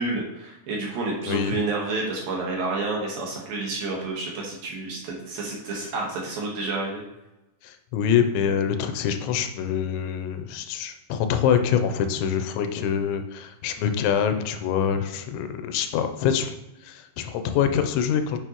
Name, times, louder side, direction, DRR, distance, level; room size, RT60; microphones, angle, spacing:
voice 1, 0.0-7.0, right 3 dB, 65° right, -2 dB, 2.7 m, -29 dB
voice 2, 1.3-1.6 7.6-16.5 16.8-18.4, left 8 dB, 90° left, 8 dB, 3.1 m, -25 dB
9.0 x 6.4 x 3.0 m, 0.95 s
omnidirectional pair, 5.1 m